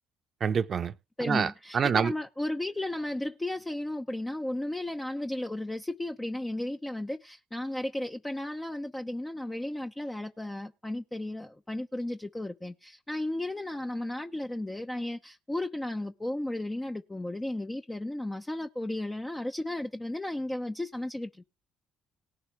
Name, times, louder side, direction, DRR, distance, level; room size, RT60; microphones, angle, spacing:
voice 1, 0.4-0.9 1.2-2.1, right 6 dB, 45° right, 0.8 m, -27 dB
voice 2, 1.2-21.4, left 1 dB, 15° left, 0.9 m, -34 dB
19.0 x 6.8 x 3.4 m
hypercardioid pair, 55°, 0 cm